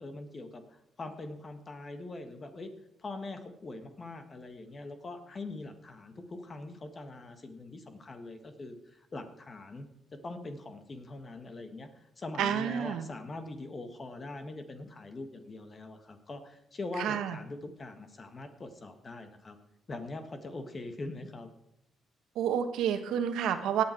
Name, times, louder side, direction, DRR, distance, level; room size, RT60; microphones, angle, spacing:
voice 1, 0.0-2.7 3.0-11.9 12.2-19.6 19.9-21.5, left 2 dB, 35° left, 7 dB, 1.6 m, -42 dB
voice 2, 12.4-13.1 17.0-17.4 22.3-23.8, right 9 dB, 85° right, 8 dB, 1.3 m, -29 dB
17.0 x 8.8 x 4.5 m, 0.82 s
cardioid pair, 90°, 0 cm